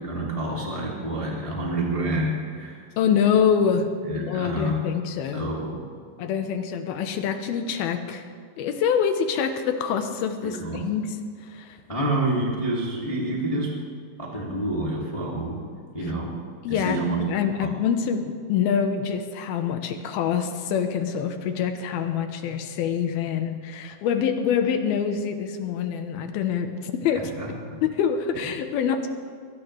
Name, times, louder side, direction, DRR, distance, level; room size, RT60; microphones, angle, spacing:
voice 1, 0.0-2.8 4.1-4.8 5.3-5.8 10.4-10.8 11.9-13.7 14.2-15.6 15.9-16.3 16.7-17.2 17.6-17.7 27.1-27.8, right 1 dB, 10° left, -4 dB, 1.7 m, -28 dB
voice 2, 3.0-5.5 6.2-8.3 8.6-11.1 11.4-11.8 16.6-27.3 27.8-29.1, left 7 dB, 80° left, 7 dB, 2.8 m, -25 dB
22.0 x 17.5 x 3.3 m, 2.1 s
omnidirectional pair, 4.4 m